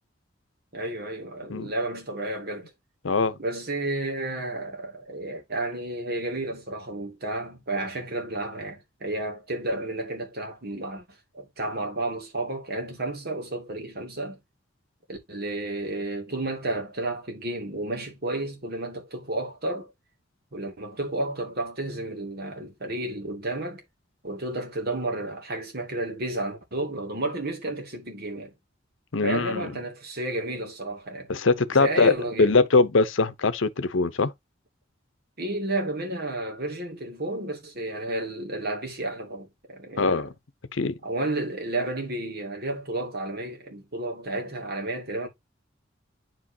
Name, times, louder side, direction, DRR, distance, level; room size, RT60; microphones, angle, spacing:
voice 1, 0.7-2.7 3.4-11.0 11.3-14.4 15.1-19.9 20.5-23.8 24.2-28.5 29.2-31.3 31.7-32.6 35.4-40.3 41.0-45.3, right 2 dB, 55° right, 2.4 m, -32 dB
voice 2, 29.1-29.7 31.3-32.1 32.4-34.3 40.0-40.3 40.7-40.9, left 3 dB, 85° left, 0.8 m, -22 dB
9.1 x 5.1 x 2.8 m
head